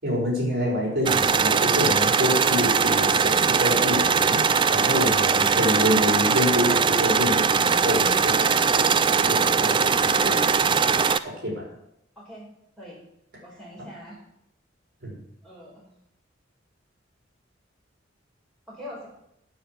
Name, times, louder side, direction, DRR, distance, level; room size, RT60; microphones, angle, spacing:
voice 1, 0.0-11.7 15.0-15.2, left 1 dB, 55° right, -3 dB, 4.3 m, -27 dB
sound 1, 1.1-11.2, right 6 dB, 25° right, 0.3 m, -21 dB
voice 2, 12.2-12.5 12.8-13.0 13.4-14.2 15.4-15.9 18.7-19.1, left 1 dB, ahead, -6 dB, 5.2 m, -42 dB
9.1 x 7.4 x 7.6 m, 0.78 s
head